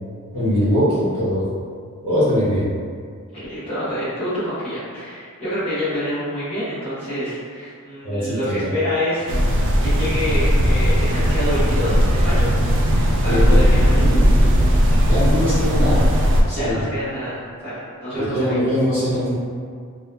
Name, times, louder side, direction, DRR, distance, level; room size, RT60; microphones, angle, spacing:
voice 1, 0.3-1.5 2.0-2.7 8.0-8.7 13.2-14.4 15.0-16.1 16.5-16.8 18.2-19.3, equal, 25° right, -14 dB, 1.2 m, -21 dB
voice 2, 3.3-9.5 9.8-12.5 12.8-14.0 16.5-18.6, equal, 25° left, -14 dB, 1.0 m, -27 dB
sound 1, 9.3-16.4, equal, 55° right, 0.3 m, -17 dB
2.7 x 2.3 x 2.3 m, 2.1 s
head